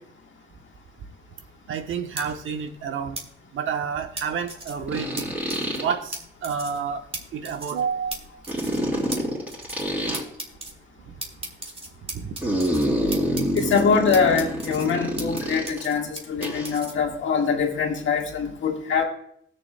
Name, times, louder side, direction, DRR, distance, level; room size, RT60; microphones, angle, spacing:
voice 1, 1.7-3.2 3.5-5.3 5.7-7.0 7.3-8.2 12.1-12.3, right 6 dB, 75° right, 6 dB, 1.0 m, -29 dB
sound 1, 2.2-2.3 3.2-3.3 4.2-4.7 5.2-5.3 5.5-5.8 6.1-6.2 6.4-6.8 7.1-7.2 7.4-7.8 8.1-8.2 8.4-8.8 9.1-9.2 9.5-9.9 10.1-10.7 11.2-12.9 13.1-13.8 14.1-15.4 15.7-16.9, right 2 dB, 25° right, 1.7 m, -35 dB
sound 2, 2.3-2.4 4.9-5.9 8.5-10.2 12.4-15.8 16.4-16.8, equal, 5° right, 3.2 m, -27 dB
voice 2, 13.5-19.0, left 6 dB, 70° left, 2 dB, 1.6 m, -23 dB
20.0 x 6.8 x 2.2 m, 0.68 s
cardioid pair, 100°, 20 cm